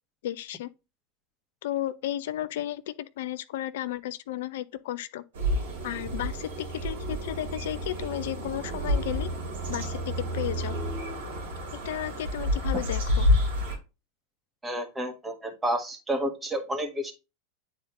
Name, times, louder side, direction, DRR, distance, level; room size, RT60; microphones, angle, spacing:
voice 1, 0.2-0.7 1.6-5.2 5.8-9.3 9.7-10.8 11.7-13.3, left 12 dB, 65° left, 0.4 m, -33 dB
sound 1, 5.3-13.8, left 1 dB, 70° right, 2.4 m, -29 dB
voice 2, 14.6-17.1, right 1 dB, 15° right, 1.7 m, -30 dB
9.9 x 4.2 x 2.5 m
figure-of-eight pair, 90°, 0 cm